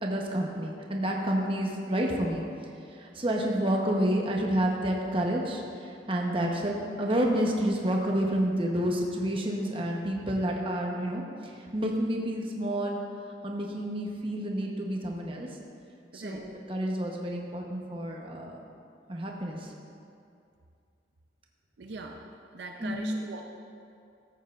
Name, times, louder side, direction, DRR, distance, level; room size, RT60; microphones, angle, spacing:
voice 1, 0.0-2.4 2.9-13.0 13.4-15.5 16.1-18.6 19.1-19.7 22.8-23.1, right 1 dB, 30° right, -1 dB, 0.9 m, -29 dB
voice 2, 16.1-16.4 21.8-22.2 22.5-23.4, right 3 dB, 70° right, 2 dB, 0.6 m, -41 dB
13.5 x 8.1 x 2.5 m, 2.5 s
head